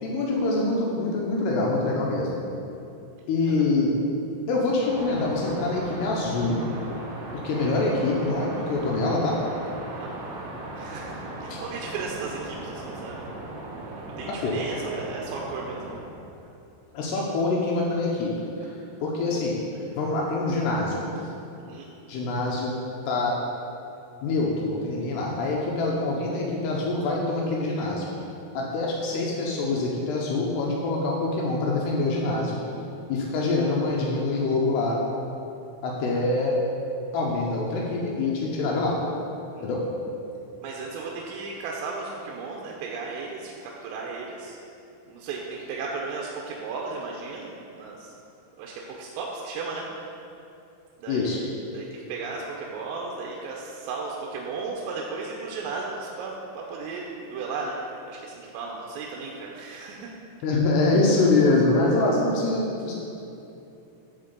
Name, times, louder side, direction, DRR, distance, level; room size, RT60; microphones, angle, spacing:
voice 1, 0.0-2.3 3.3-3.9 4.5-6.6 7.4-9.4 11.5-11.6 14.3-14.5 16.9-18.3 19.0-19.6 20.0-21.0 22.1-22.7 23.1-23.4 24.2-28.1 28.5-32.6 33.1-35.0 35.8-36.6 37.1-39.0 39.6-39.8 51.1-51.4 60.4-62.9, left 3 dB, 80° left, -2 dB, 2.4 m, -25 dB
sound 1, 4.9-16.0, right 2 dB, 70° right, 3.0 m, -38 dB
voice 2, 10.0-10.5 10.7-13.3 14.2-15.8 21.2-21.9 39.5-39.7 40.6-44.6 45.1-48.1 48.6-49.9 51.0-57.8 58.1-60.1, right 4 dB, 90° right, -2 dB, 3.4 m, -35 dB
11.5 x 4.5 x 6.6 m, 2.8 s
omnidirectional pair, 5.9 m